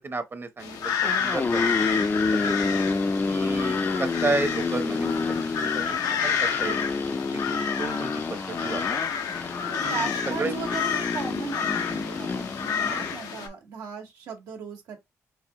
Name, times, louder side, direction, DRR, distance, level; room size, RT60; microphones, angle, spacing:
voice 1, 0.0-1.7 2.3-2.8 3.3-5.2 5.6-6.8 7.3-8.8 9.8-10.1 10.4-10.6 12.8-13.0, right 3 dB, 40° right, 0.9 m, -32 dB
Crows flying and cawing over their nests, 0.6-13.5, left 7 dB, 85° left, 0.8 m, -30 dB
sound 1, 0.9-13.2, left 3 dB, 30° left, 0.5 m, -29 dB
voice 2, 9.7-15.0, right 5 dB, 85° right, 1.5 m, -37 dB
4.7 x 2.4 x 3.0 m
supercardioid pair, 60°, 6 cm